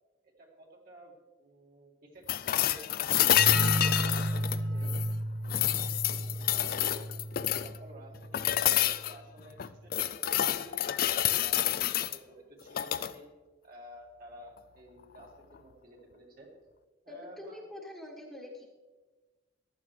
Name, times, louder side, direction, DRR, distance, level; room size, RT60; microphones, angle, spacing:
voice 1, 0.4-4.9 6.0-7.1 7.6-10.8 11.2-13.3 13.6-16.5 17.0-17.6, right 1 dB, 50° right, -1 dB, 2.2 m, -52 dB
sound 1, 2.3-5.1 5.5-7.8 8.3-9.1 9.6-12.2 12.7-13.1 15.1-15.2, left 12 dB, 50° left, 0.4 m, -28 dB
sound 2, 3.4-8.8, right 1 dB, 80° right, 0.6 m, -33 dB
voice 2, 17.1-18.7, left 1 dB, ahead, -2 dB, 1.4 m, -45 dB
15.0 x 11.5 x 3.2 m, 1.3 s
head